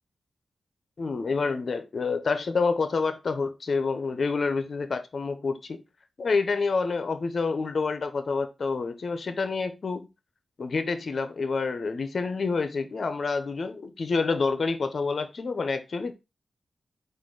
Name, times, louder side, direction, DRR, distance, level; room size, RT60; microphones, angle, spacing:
voice 1, 1.0-5.8 6.2-10.1 10.6-16.1, left 4 dB, 65° left, 0.7 m, -28 dB
4.1 x 2.6 x 4.6 m
cardioid pair, 45°, 0 cm